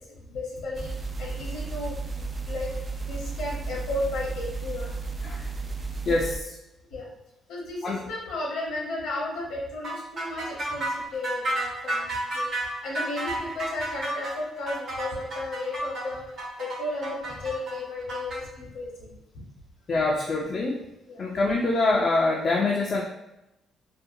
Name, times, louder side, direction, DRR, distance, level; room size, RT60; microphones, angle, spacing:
voice 1, 0.2-2.7 3.0-5.0 6.9-7.1 7.5-12.1 12.3-12.5 12.8-16.2 16.6-19.2 21.1-21.3, left 2 dB, 85° left, -2 dB, 0.8 m, -34 dB
sound 1, 0.7-6.4, right 4 dB, 30° right, 0.3 m, -33 dB
voice 2, 6.1-6.5 7.8-8.0 19.9-20.8 21.2-23.0, left 2 dB, 45° left, -2 dB, 0.4 m, -24 dB
sound 2, 9.8-18.4, right 1 dB, 60° right, 1.0 m, -31 dB
2.5 x 2.3 x 2.6 m, 0.90 s
cardioid pair, 90°, 0 cm